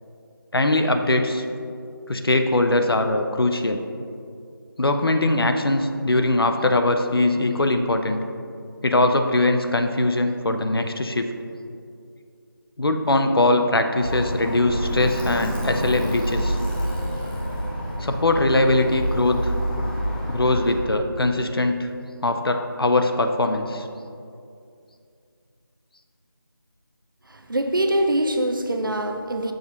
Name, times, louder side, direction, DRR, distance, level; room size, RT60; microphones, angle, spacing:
voice 1, 0.5-1.4 2.1-3.8 4.8-8.2 8.8-11.3 12.8-16.6 18.0-19.5 20.3-21.9 22.2-23.8, left 2 dB, 75° left, 6 dB, 0.6 m, -21 dB
Alarm, 14.0-20.8, equal, 20° left, 0.7 m, -27 dB
voice 2, 27.3-29.5, right 1 dB, 60° right, 6 dB, 0.6 m, -23 dB
6.5 x 2.8 x 5.6 m, 2.4 s
figure-of-eight pair, 180°, 12 cm